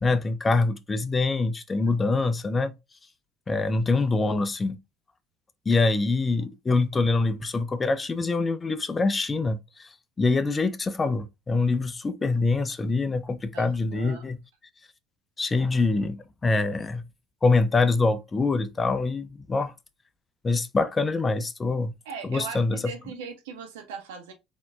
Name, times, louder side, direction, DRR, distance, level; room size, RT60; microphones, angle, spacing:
voice 1, 0.0-2.7 3.5-4.8 5.7-9.9 10.2-14.4 15.4-17.0 17.4-19.7 20.4-21.9 22.3-22.9, left 3 dB, 25° left, 0.6 m, -25 dB
voice 2, 13.5-14.3 22.0-24.3, right 6 dB, 90° right, 1.0 m, -39 dB
4.1 x 3.0 x 2.6 m
supercardioid pair, 85°, 0 cm